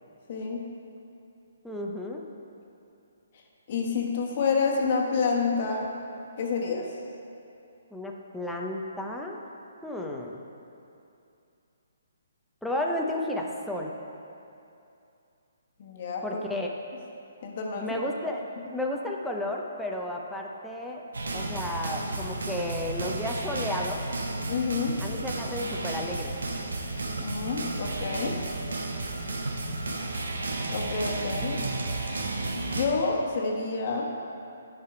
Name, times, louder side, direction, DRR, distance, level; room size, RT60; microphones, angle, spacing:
voice 1, 0.3-0.6 3.7-5.9 6.4-6.9 15.8-16.2 17.4-17.9 24.5-24.9 27.2-28.4 30.7-31.6 32.5-34.1, left 4 dB, 45° left, 0 dB, 1.2 m, -28 dB
voice 2, 1.6-2.3 7.9-9.4 9.8-10.4 12.6-13.9 16.2-16.7 17.7-18.5 18.7-21.0 21.3-24.1 25.0-26.3, left 1 dB, ahead, -1 dB, 0.6 m, -32 dB
sound 1, 21.1-32.9, right 2 dB, 85° right, 1.0 m, -32 dB
10.5 x 4.8 x 4.9 m, 2.7 s
hypercardioid pair, 155°, 0 cm